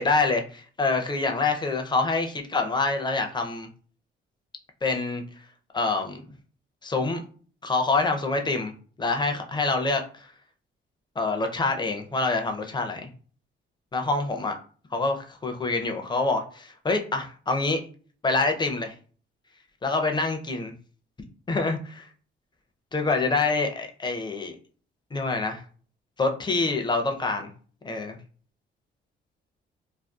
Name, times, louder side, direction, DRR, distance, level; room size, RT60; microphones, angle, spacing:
voice 1, 0.0-3.7 4.8-5.2 5.7-6.2 6.8-7.2 7.6-8.7 9.0-10.3 11.2-13.1 13.9-14.5 14.9-17.8 18.2-18.9 19.8-20.7 21.5-22.1 22.9-24.6 25.1-25.6 26.2-27.5 27.8-28.2, left 3 dB, 20° left, 5 dB, 0.5 m, -26 dB
2.5 x 2.3 x 2.3 m, 0.42 s
cardioid pair, 90°, 20 cm